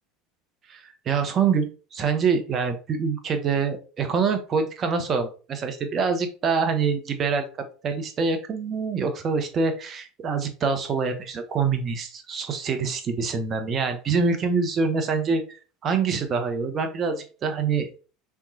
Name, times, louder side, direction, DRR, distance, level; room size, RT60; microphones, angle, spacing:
voice 1, 0.7-7.5 7.8-18.0, right 5 dB, 40° right, 6 dB, 0.8 m, -25 dB
3.5 x 3.0 x 2.7 m, 0.36 s
hypercardioid pair, 80°, 0 cm